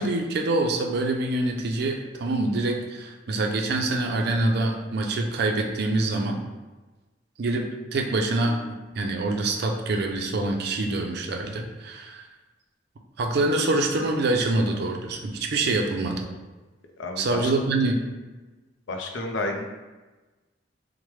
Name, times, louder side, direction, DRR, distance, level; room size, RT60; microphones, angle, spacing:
voice 1, 0.0-6.4 7.4-12.2 13.2-16.2 17.2-17.9, right 2 dB, 60° right, 3 dB, 0.4 m, -25 dB
voice 2, 17.0-17.5 18.9-19.7, left 2 dB, 80° left, 3 dB, 0.4 m, -30 dB
3.0 x 2.1 x 3.1 m, 1.2 s
head